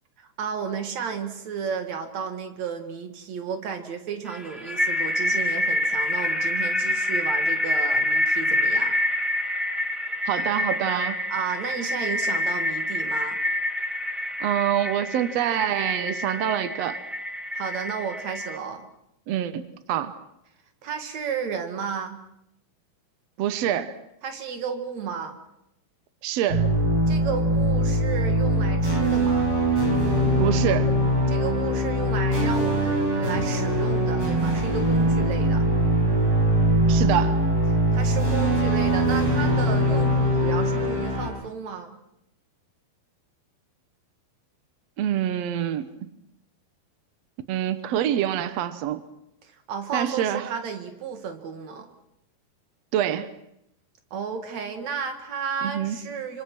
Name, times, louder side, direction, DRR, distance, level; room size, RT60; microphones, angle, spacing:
voice 1, 0.2-9.0 11.3-13.4 17.5-18.9 20.8-22.2 24.2-25.4 27.1-29.5 31.3-35.7 37.9-42.0 49.4-51.9 54.1-56.4, right 6 dB, 50° right, 7 dB, 2.9 m, -33 dB
sound 1, 4.3-18.6, left 1 dB, ahead, 1.0 m, -27 dB
voice 2, 10.3-11.2 14.4-17.0 19.3-20.2 23.4-24.0 26.2-26.7 30.2-30.9 36.9-37.4 45.0-45.9 47.5-49.0 49.9-50.5 52.9-53.3 55.6-56.0, right 11 dB, 80° right, 12 dB, 1.5 m, -26 dB
sound 2, 26.5-41.3, right 1 dB, 35° right, 6.0 m, -22 dB
26.0 x 25.0 x 6.1 m, 0.81 s
omnidirectional pair, 4.4 m